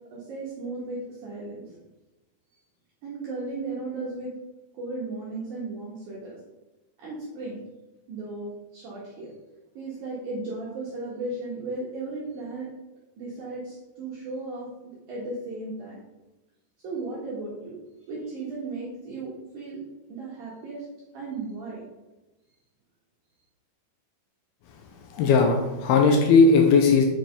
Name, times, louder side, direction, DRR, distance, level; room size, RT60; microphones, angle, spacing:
voice 1, 0.1-1.8 3.0-4.3 4.7-6.4 7.0-7.6 8.1-9.3 9.7-12.7 13.2-16.0 16.8-17.8 18.1-19.8 20.1-20.9 21.1-21.8, right 3 dB, 60° right, -6 dB, 2.5 m, -35 dB
voice 2, 25.1-27.1, left 4 dB, 80° left, 3 dB, 2.7 m, -18 dB
7.8 x 5.1 x 5.3 m, 1.1 s
omnidirectional pair, 4.5 m